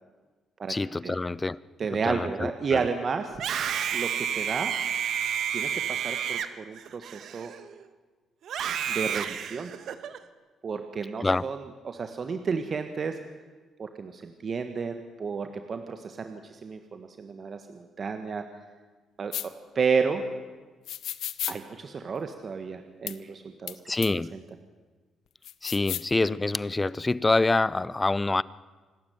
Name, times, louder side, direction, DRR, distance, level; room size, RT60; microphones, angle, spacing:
voice 1, 0.7-1.6 2.1-2.8 11.2-11.4 23.9-24.4 25.6-28.4, left 2 dB, 20° left, 20 dB, 0.6 m, -26 dB
voice 2, 1.8-3.3 3.9-4.7 5.5-7.5 8.9-9.7 10.6-11.6 11.8-13.2 13.8-18.4 19.2-20.2 21.5-23.8 24.3-24.4, right 5 dB, 45° right, 7 dB, 1.5 m, -31 dB
Screaming, 3.3-7.8 8.4-10.2, right 8 dB, 70° right, 1.3 m, -30 dB
sound 1, 19.3-19.5 20.9-21.6 23.1-23.2 23.7-23.8 24.0-24.1 25.4-26.1, left 11 dB, 75° left, 0.9 m, -33 dB
26.5 x 12.5 x 9.3 m, 1.3 s
cardioid pair, 90°, 0 cm